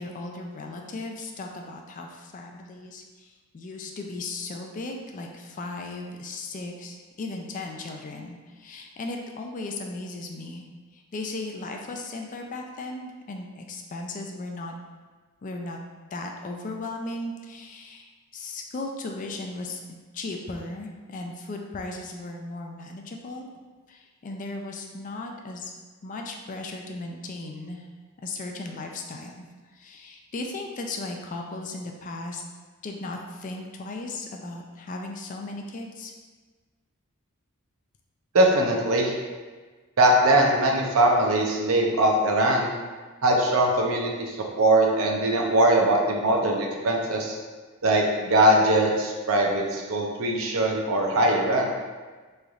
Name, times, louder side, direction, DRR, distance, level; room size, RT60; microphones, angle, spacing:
voice 1, 0.0-10.6 10.9-14.7 15.4-15.8 16.1-18.1 18.3-19.8 20.1-23.5 23.9-25.7 26.0-27.9 28.2-29.5 29.7-32.4 32.8-36.1, left 2 dB, 35° left, 2 dB, 0.3 m, -36 dB
voice 2, 38.3-39.1 40.0-42.7 43.2-47.4 47.8-51.7, right 1 dB, 65° right, 0 dB, 0.6 m, -21 dB
3.9 x 3.2 x 2.4 m, 1.4 s
head